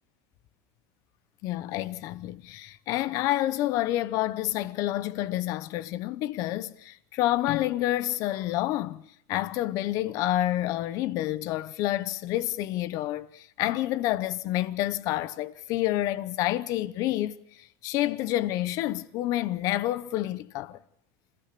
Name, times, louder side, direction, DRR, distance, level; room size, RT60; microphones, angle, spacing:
voice 1, 1.4-9.0 9.3-20.8, left 15 dB, 40° left, 0.8 m, -28 dB
28.0 x 16.0 x 6.8 m
cardioid pair, 180°, 9 cm